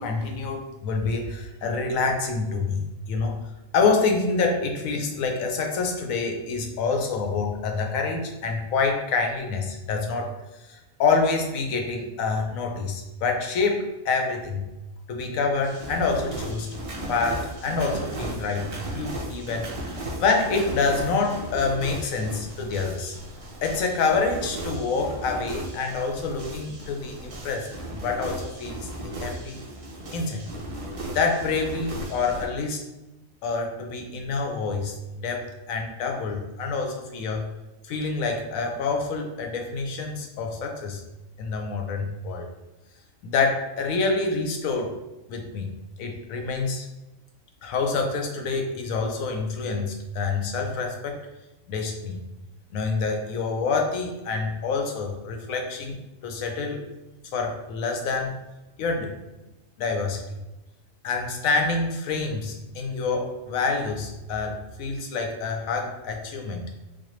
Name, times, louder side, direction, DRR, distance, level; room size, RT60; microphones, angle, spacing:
voice 1, 0.0-3.3 3.7-10.3 10.7-14.7 15.1-16.7 17.1-23.1 23.6-29.6 30.1-30.4 31.1-32.8 33.4-37.5 37.9-41.0 41.4-42.5 43.2-44.9 45.3-45.7 46.0-46.9 47.6-51.2 51.7-52.2 52.7-55.9 56.2-56.8 57.3-58.3 58.8-59.1 59.8-60.2 61.0-66.7, left 4 dB, 80° left, 2 dB, 1.1 m, -27 dB
sound 1, 15.6-32.5, right 1 dB, 55° right, 0.3 m, -36 dB
4.2 x 2.5 x 3.0 m, 1.0 s
omnidirectional pair, 1.4 m